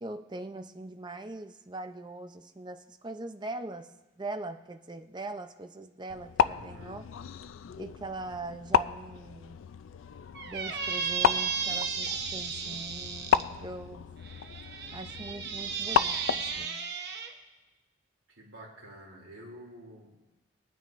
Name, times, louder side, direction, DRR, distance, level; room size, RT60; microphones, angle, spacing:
voice 1, 0.0-7.1 7.8-9.6 10.4-14.2 14.9-16.9, right 2 dB, 20° right, 7 dB, 0.5 m, -41 dB
sound 1, 6.1-16.6, left 7 dB, 80° left, 0.4 m, -32 dB
voice 2, 6.4-7.0 18.3-20.2, equal, 85° right, -3 dB, 3.1 m, -49 dB
Squeak, 10.3-13.4 14.2-17.3, right 6 dB, 55° right, 1.0 m, -34 dB
21.0 x 9.4 x 2.5 m, 1.1 s
head